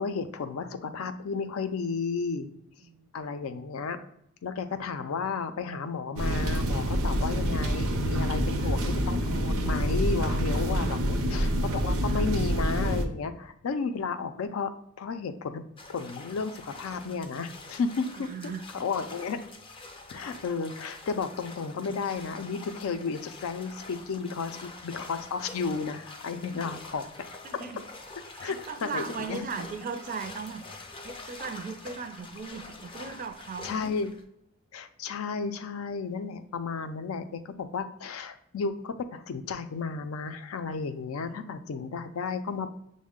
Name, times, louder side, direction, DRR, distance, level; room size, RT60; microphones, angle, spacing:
voice 1, 0.0-2.5 3.1-4.1 4.4-14.7 15.0-15.6 15.9-19.4 20.1-27.2 28.4-29.5 33.6-34.1 34.7-42.7, left 5 dB, 85° left, 9 dB, 0.4 m, -33 dB
sound 1, 6.2-13.1, equal, 90° right, 0.6 m, -27 dB
sound 2, 15.8-34.2, left 3 dB, 25° left, 0.4 m, -45 dB
voice 2, 18.1-18.6 26.5-26.6 27.4-27.8 28.4-30.6 31.0-33.7, right 5 dB, 40° right, 8 dB, 0.4 m, -38 dB
6.2 x 2.1 x 3.6 m, 0.74 s
head